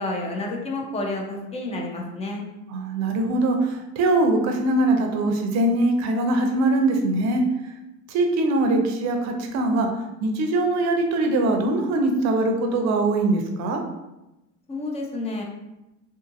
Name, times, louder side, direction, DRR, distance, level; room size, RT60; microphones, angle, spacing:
voice 1, 0.0-2.4 14.7-15.4, left 2 dB, 20° left, 0 dB, 0.3 m, -30 dB
voice 2, 2.7-7.4 8.1-9.9 10.2-13.8, right 2 dB, 45° right, 3 dB, 0.5 m, -22 dB
2.6 x 2.6 x 2.5 m, 0.96 s
supercardioid pair, 125°, 38 cm